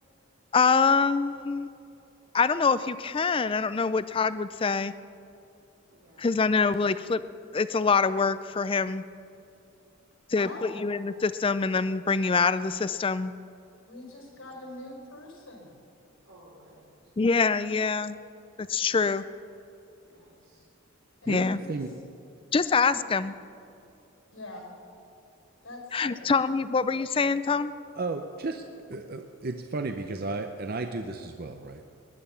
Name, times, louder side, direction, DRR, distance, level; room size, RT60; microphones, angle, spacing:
voice 1, 0.5-1.7 2.3-4.9 6.2-7.2 7.5-9.0 10.3-13.3 17.2-18.2 18.6-19.2 21.3-21.6 22.5-23.3 25.9-27.7, left 4 dB, 25° left, 14 dB, 0.4 m, -25 dB
voice 2, 5.9-6.7 14.4-14.7 16.3-16.9 20.0-20.7 25.9-26.3, right 1 dB, 85° right, -5 dB, 3.5 m, -58 dB
voice 3, 10.3-10.8 13.8-15.8 21.2-21.8 22.8-23.0 24.3-24.6 25.6-26.2, left 1 dB, 80° left, 1 dB, 4.7 m, -43 dB
voice 4, 21.3-21.9 28.0-28.6 28.9-31.9, right 3 dB, 45° right, 6 dB, 0.6 m, -34 dB
19.5 x 11.0 x 5.7 m, 2.7 s
head